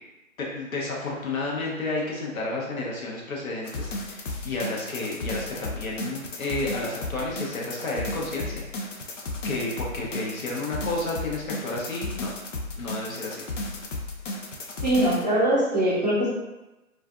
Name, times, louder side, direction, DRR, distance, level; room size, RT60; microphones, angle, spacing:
voice 1, 0.4-8.5 8.8-8.9 9.4-12.3 12.8-13.4, left 2 dB, 80° left, -3 dB, 0.9 m, -31 dB
sound 1, 3.7-15.2, left 2 dB, 65° left, 0.5 m, -34 dB
voice 2, 14.8-16.3, right 1 dB, 30° right, -8 dB, 0.6 m, -22 dB
2.5 x 2.1 x 2.4 m, 1.0 s
hypercardioid pair, 175°, 41 cm